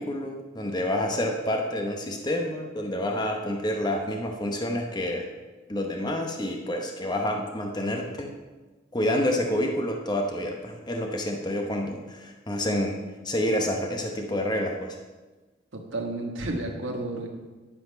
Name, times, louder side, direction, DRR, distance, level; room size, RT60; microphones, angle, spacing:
voice 1, 0.0-5.3 5.7-8.3 8.9-12.9 13.2-15.0, left 1 dB, 20° left, 2 dB, 0.8 m, -28 dB
voice 2, 15.7-17.3, right 2 dB, 85° right, 1 dB, 1.5 m, -31 dB
10.5 x 5.9 x 5.1 m, 1.2 s
head